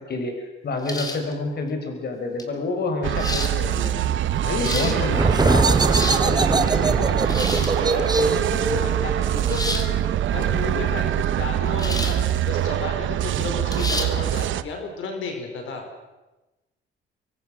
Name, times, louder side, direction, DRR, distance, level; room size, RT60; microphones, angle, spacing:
voice 1, 0.1-4.1 4.6-5.8, left 3 dB, 55° left, 5 dB, 4.8 m, -28 dB
sound 1, 0.8-1.3 2.4-2.5 3.2-3.5 4.4-5.0 5.7-6.3 7.2-7.8 9.5-9.9 11.8-12.2 12.6-12.7 13.7-14.1, left 2 dB, 20° left, 3.4 m, -30 dB
sound 2, 3.0-14.6, right 11 dB, 75° right, 1.0 m, -24 dB
voice 2, 4.4-5.7 6.2-9.9 10.3-15.9, left 4 dB, 80° left, 4 dB, 5.2 m, -32 dB
sound 3, 5.1-10.5, right 3 dB, 20° right, 1.3 m, -23 dB
26.0 x 22.5 x 6.3 m, 1.1 s
cardioid pair, 90°, 20 cm